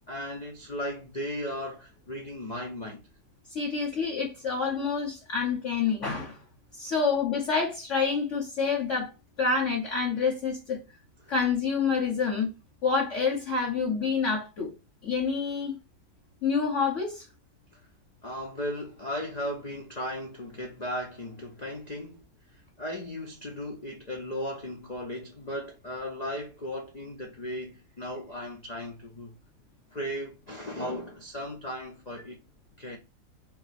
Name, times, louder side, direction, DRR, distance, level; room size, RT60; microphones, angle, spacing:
voice 1, 0.1-3.0 11.2-11.3 17.7-17.8 18.2-22.2 22.5-29.4 29.9-32.4 32.8-33.0, equal, 80° left, 0.3 m, -36 dB
voice 2, 3.5-6.4 6.8-9.1 9.4-10.8 11.3-12.5 12.8-14.7 15.0-15.7 16.4-17.3, left 5 dB, 50° left, 1.2 m, -27 dB
3.0 x 2.9 x 4.1 m
omnidirectional pair, 1.9 m